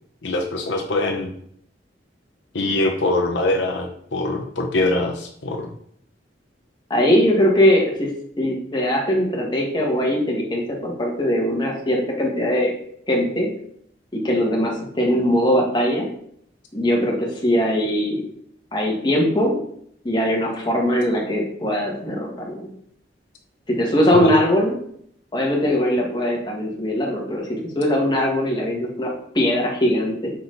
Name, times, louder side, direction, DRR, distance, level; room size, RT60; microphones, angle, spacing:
voice 1, 0.2-1.3 2.5-5.7 24.1-24.3, left 2 dB, 85° left, 2 dB, 0.8 m, -23 dB
voice 2, 6.9-8.1 8.4-12.7 13.1-13.5 14.1-16.1 16.7-18.2 18.7-19.6 20.0-22.7 23.7-24.8 25.3-30.3, equal, 25° left, -2 dB, 1.7 m, -21 dB
6.0 x 4.3 x 4.0 m, 0.66 s
head